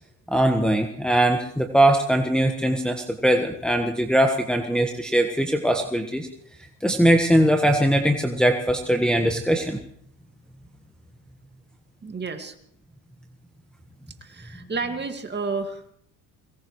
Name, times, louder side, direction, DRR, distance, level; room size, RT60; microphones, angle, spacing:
voice 1, 0.3-6.3 6.8-9.8, right 1 dB, ahead, 2 dB, 1.4 m, -21 dB
voice 2, 12.0-12.6 14.2-15.9, right 4 dB, 20° right, 6 dB, 2.1 m, -31 dB
22.5 x 19.0 x 3.2 m, 0.67 s
supercardioid pair, 100°, 47 cm